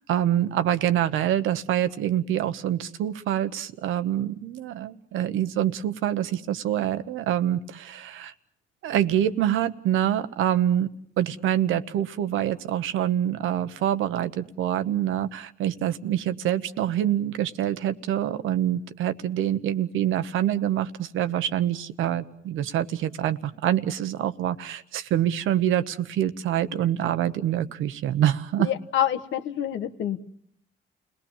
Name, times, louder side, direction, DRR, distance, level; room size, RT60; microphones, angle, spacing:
voice 1, 0.1-8.3 8.8-10.9 11.2-28.7, right 11 dB, 85° right, 12 dB, 1.1 m, -26 dB
voice 2, 28.6-30.2, left 10 dB, 75° left, 7 dB, 1.4 m, -27 dB
30.0 x 19.0 x 7.3 m, 0.69 s
cardioid pair, 90°, 20 cm